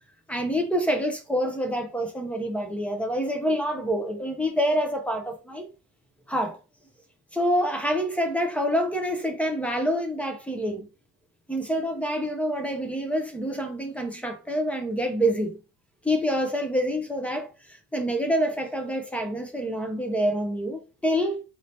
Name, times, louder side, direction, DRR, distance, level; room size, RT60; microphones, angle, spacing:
voice 1, 0.3-5.7 6.3-6.6 7.3-10.9 11.5-15.6 16.0-21.4, equal, 5° left, 0.5 m, -27 dB
4.2 x 2.7 x 3.3 m
cardioid pair, 175°, 37 cm